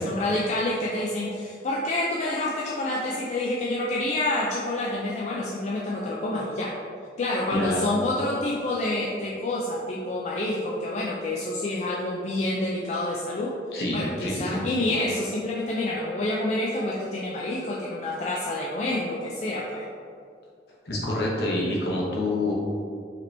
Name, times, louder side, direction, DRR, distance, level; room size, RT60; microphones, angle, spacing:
voice 1, 0.0-6.7 7.2-13.6 13.9-19.8, left 1 dB, 40° left, -4 dB, 0.4 m, -28 dB
voice 2, 7.5-7.9 13.7-14.6 20.9-22.5, left 1 dB, 60° left, -4 dB, 0.9 m, -27 dB
4.9 x 2.9 x 3.2 m, 2.3 s
head